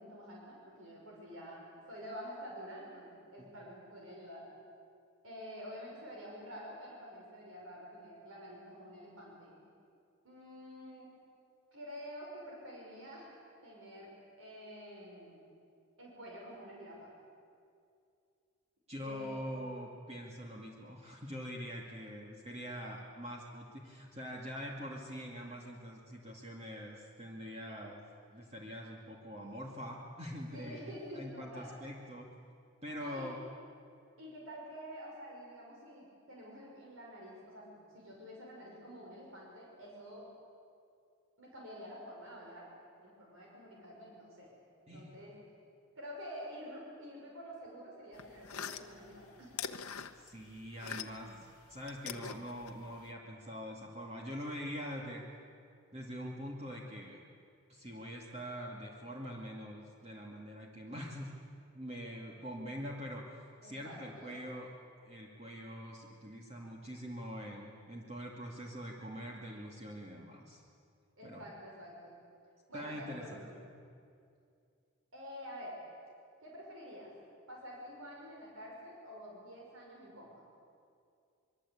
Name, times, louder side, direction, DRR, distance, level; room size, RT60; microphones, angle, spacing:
voice 1, 0.0-4.5 5.2-9.6 10.2-11.1 11.7-13.4 13.6-14.1 14.4-15.4 16.0-17.1 19.0-19.5 30.5-31.8 33.0-33.3 34.2-40.3 41.4-42.7 43.0-44.5 44.9-45.3 46.0-49.6 63.6-64.4 71.2-72.2 72.7-73.6 75.1-75.8 76.4-77.1 77.5-80.4, equal, 65° right, -3 dB, 6.0 m, -48 dB
voice 2, 18.9-30.9 31.1-32.3 32.8-33.4 44.9-45.2 50.2-55.2 55.9-57.2 57.7-61.4 61.7-63.2 63.6-64.7 65.0-70.6 71.2-71.4 72.7-73.4, equal, 30° right, -2 dB, 2.3 m, -44 dB
sound 1, 48.1-51.4 51.6-53.1, left 7 dB, 80° left, 1.1 m, -43 dB
25.0 x 23.0 x 8.7 m, 2.4 s
head